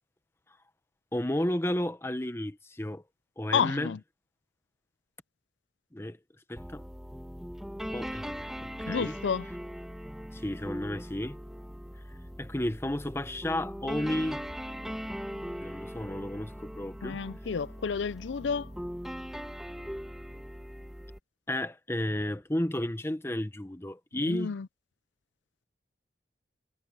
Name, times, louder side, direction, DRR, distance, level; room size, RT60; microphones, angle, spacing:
voice 1, 1.1-3.0 3.4-3.9 5.9-6.2 6.5-6.8 7.9-9.2 10.3-11.4 12.4-14.4 15.6-17.2 21.5-24.5, left 1 dB, 15° left, 0.9 m, -32 dB
voice 2, 3.5-4.0 8.9-9.5 17.0-18.7 24.1-24.7, left 6 dB, 85° left, 0.5 m, -30 dB
sound 1, 6.6-21.2, equal, ahead, 1.4 m, -40 dB
head